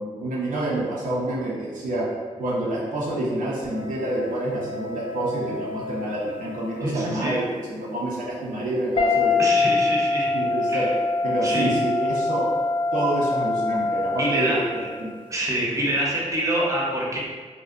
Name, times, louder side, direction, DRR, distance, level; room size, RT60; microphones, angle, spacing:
voice 1, 0.0-2.1 2.4-9.4 10.3-10.9 11.2-12.5 12.9-15.1, right 1 dB, 90° right, -5 dB, 0.5 m, -27 dB
sound 1, 3.7-6.9 9.0-15.1, left 3 dB, 40° left, 0.4 m, -25 dB
voice 2, 6.8-7.4 9.4-10.3 10.7-10.9 11.4-11.7 14.2-14.9 15.3-17.2, right 1 dB, 25° right, -4 dB, 0.6 m, -26 dB
2.5 x 2.1 x 2.4 m, 1.5 s
cardioid pair, 75°, 13 cm